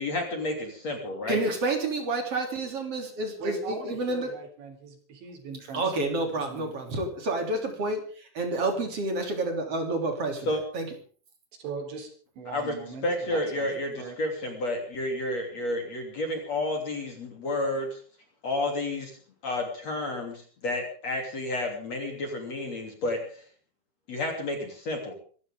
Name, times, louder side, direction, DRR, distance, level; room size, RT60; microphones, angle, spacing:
voice 1, 0.0-1.4 10.5-10.6 12.5-12.7 13.0-17.9 18.4-19.1 19.4-20.3 20.6-23.2 24.1-25.1, left 1 dB, 40° left, 3 dB, 3.6 m, -30 dB
voice 2, 1.3-4.3 5.7-11.0, right 2 dB, 35° right, 3 dB, 3.6 m, -29 dB
voice 3, 3.4-5.9 6.5-6.7 11.6-12.1 12.4-14.2, right 4 dB, 70° right, 5 dB, 5.9 m, -39 dB
26.0 x 14.0 x 3.7 m, 0.43 s
omnidirectional pair, 5.5 m